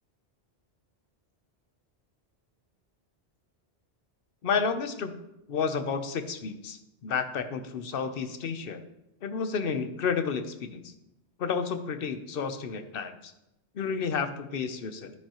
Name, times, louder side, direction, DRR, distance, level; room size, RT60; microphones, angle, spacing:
voice 1, 4.4-5.1 5.5-8.8 9.2-10.9 11.4-13.3 13.7-15.1, left 5 dB, 60° left, 9 dB, 0.9 m, -31 dB
11.0 x 10.0 x 3.0 m, 0.89 s
omnidirectional pair, 1.1 m